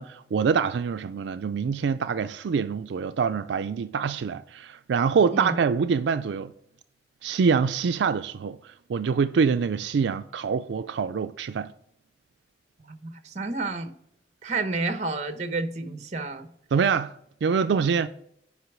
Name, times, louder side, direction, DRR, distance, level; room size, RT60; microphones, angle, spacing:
voice 1, 0.0-6.5 7.2-11.7 16.7-17.1 17.4-18.1, right 6 dB, 80° right, 0.4 m, -25 dB
voice 2, 12.9-13.9 14.4-16.5, right 3 dB, 40° right, 0.9 m, -30 dB
8.2 x 5.4 x 5.9 m
head